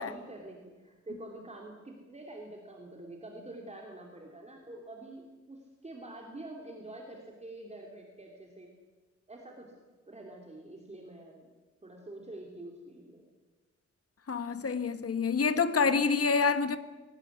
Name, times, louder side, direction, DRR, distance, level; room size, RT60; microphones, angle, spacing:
voice 1, 0.0-5.2 5.5-8.7 9.3-9.7 10.1-11.5 11.8-13.2, right 2 dB, 25° right, 3.0 m, -46 dB
voice 2, 14.3-16.8, left 5 dB, 55° left, 1.4 m, -27 dB
22.5 x 18.0 x 9.4 m
wide cardioid pair, 145°, 29 cm